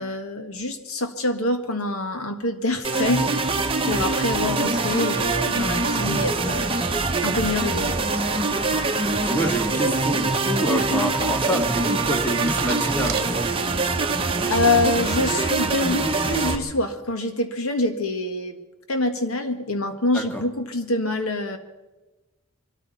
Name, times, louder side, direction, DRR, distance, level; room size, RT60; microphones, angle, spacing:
voice 1, 0.0-3.5 3.9-6.7 7.2-8.0 8.2-8.3 14.5-18.6 18.9-21.6, left 2 dB, 75° left, 6 dB, 1.8 m, -25 dB
sound 1, 2.8-16.6, right 3 dB, 25° right, 1.0 m, -24 dB
voice 2, 9.2-13.4 20.1-20.4, equal, 10° left, 2 dB, 1.8 m, -27 dB
sound 2, 9.7-13.9 14.4-14.8, right 7 dB, 45° right, 1.3 m, -38 dB
25.0 x 13.5 x 4.2 m, 1.1 s
head